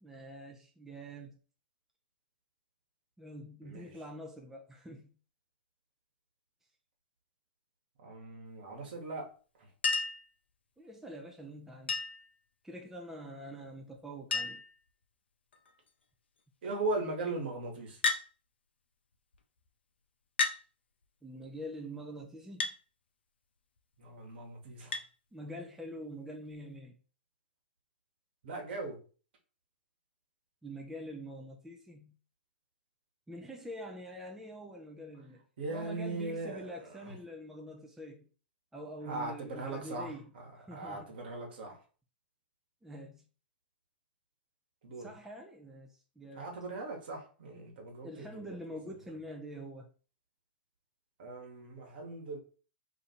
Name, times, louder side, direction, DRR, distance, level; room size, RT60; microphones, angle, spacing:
voice 1, 0.0-1.4 3.2-5.1 10.8-12.0 12.6-14.6 21.2-22.7 25.3-27.0 30.6-32.1 33.3-35.4 35.7-38.3 38.7-40.3 40.6-41.1 42.8-43.2 45.0-46.4 47.9-49.9, equal, 5° right, 0.6 m, -45 dB
voice 2, 3.6-4.0 8.0-9.3 9.6-9.7 16.6-18.0 24.0-24.9 28.4-29.0 35.6-37.1 39.0-41.8 44.8-45.1 46.3-48.6 51.2-52.4, right 2 dB, 60° right, 1.3 m, -39 dB
Chink clink, 9.8-10.3 11.9-12.3 13.7-13.8 14.0-14.1 14.3-14.8 15.5-15.9 18.0-18.3 19.3-19.4 20.4-20.6 22.6-22.8 24.9-25.1 26.5-26.6, left 4 dB, 75° left, 0.5 m, -32 dB
2.8 x 2.6 x 4.2 m
figure-of-eight pair, 105°, 6 cm